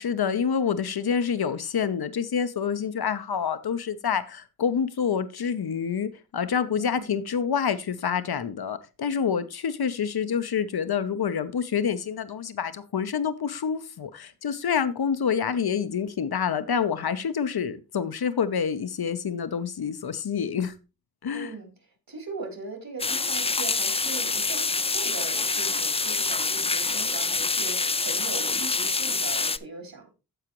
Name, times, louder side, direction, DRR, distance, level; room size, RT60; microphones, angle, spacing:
voice 1, 0.0-20.7 21.2-21.5, left 7 dB, 75° left, 0.9 m, -27 dB
voice 2, 6.8-7.2 21.3-30.1, right 3 dB, 65° right, 3.4 m, -40 dB
sound 1, 23.0-29.6, left 3 dB, 15° left, 0.4 m, -26 dB
14.5 x 4.9 x 3.0 m
cardioid pair, 55°, 38 cm